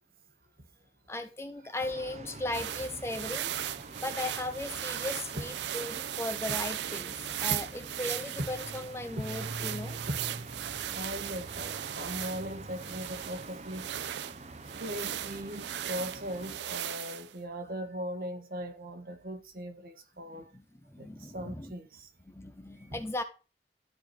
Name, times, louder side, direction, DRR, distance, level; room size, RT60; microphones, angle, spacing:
voice 1, 1.1-3.5 4.0-7.1 7.4-7.7 8.0-10.0 20.5-20.6 20.9-21.7 22.3-23.2, left 2 dB, 15° left, 0.7 m, -37 dB
voice 2, 1.6-2.0 5.4-5.5 6.5-6.6 7.5-7.6 8.4-8.5 9.2-9.3 10.1-10.2 10.5-10.6 10.9-13.9 14.8-20.5 21.0-22.1 22.8-23.0, equal, 55° right, 1.5 m, -39 dB
sound 1, 1.8-16.6, right 2 dB, 40° right, 0.9 m, -45 dB
sound 2, 2.5-17.3, right 11 dB, 80° right, 0.4 m, -37 dB
12.5 x 4.7 x 4.3 m
head